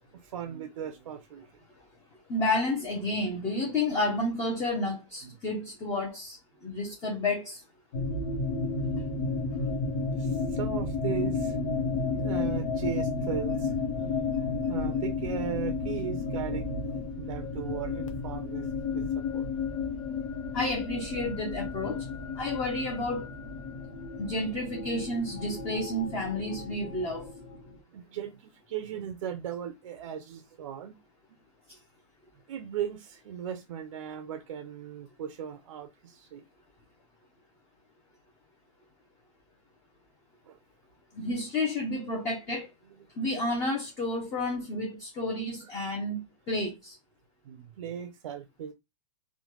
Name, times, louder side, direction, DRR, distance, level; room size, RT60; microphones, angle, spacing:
voice 1, 0.1-1.5 5.2-5.3 8.9-9.1 9.9-11.6 12.2-19.5 21.9-22.0 22.2-22.3 27.7-30.9 31.3-31.4 32.5-36.4 40.5-40.6 45.6-45.7 47.4-48.7, right 9 dB, 80° right, 0.5 m, -38 dB
voice 2, 2.3-6.4 6.6-7.6 20.5-22.0 22.4-23.3 24.2-27.2 41.2-42.7 43.2-46.2 46.5-46.9, left 2 dB, 20° left, 0.5 m, -30 dB
sound 1, 7.9-27.8, left 4 dB, 85° left, 0.8 m, -32 dB
3.1 x 2.1 x 2.9 m
supercardioid pair, 160°, 17 cm